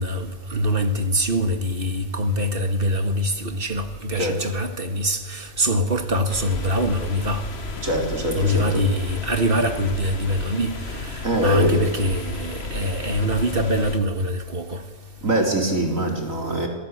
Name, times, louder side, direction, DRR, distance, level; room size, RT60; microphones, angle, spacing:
voice 1, 0.0-7.4 8.4-14.8, equal, 40° right, 2.2 m, -24 dB
voice 2, 4.1-4.5 7.8-8.8 11.2-11.8 15.2-16.7, right 1 dB, 70° right, 4.2 m, -23 dB
sound 1, 6.3-14.0, left 4 dB, 50° left, 1.7 m, -33 dB
27.5 x 17.5 x 8.3 m
omnidirectional pair, 1.4 m